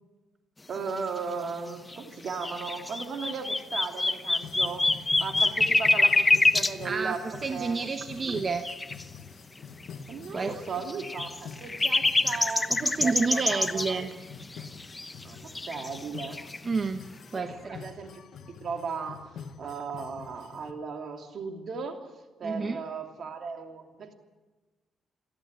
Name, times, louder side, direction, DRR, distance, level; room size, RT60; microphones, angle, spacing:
voice 1, 0.7-4.9 5.2-7.8 8.2-8.4 10.1-12.7 13.0-13.8 15.2-16.4 17.3-17.4 17.8-18.2 18.6-22.0 22.4-24.1, right 5 dB, 55° right, 4 dB, 2.9 m, -36 dB
sound 1, 1.9-2.0 2.3-6.7 8.6-9.0 9.8-9.9 10.3-10.4 10.8-13.9 14.4-15.2 15.5-16.6, left 2 dB, 20° left, 1.0 m, -25 dB
sound 2, 4.4-20.7, left 6 dB, 65° left, 1.5 m, -46 dB
voice 2, 6.8-8.7 10.3-10.6 12.7-14.1 16.6-17.0 17.3-17.8 22.4-22.8, right 4 dB, 35° right, 8 dB, 1.1 m, -30 dB
29.0 x 11.0 x 9.2 m, 1.2 s
cardioid pair, 90°, 0 cm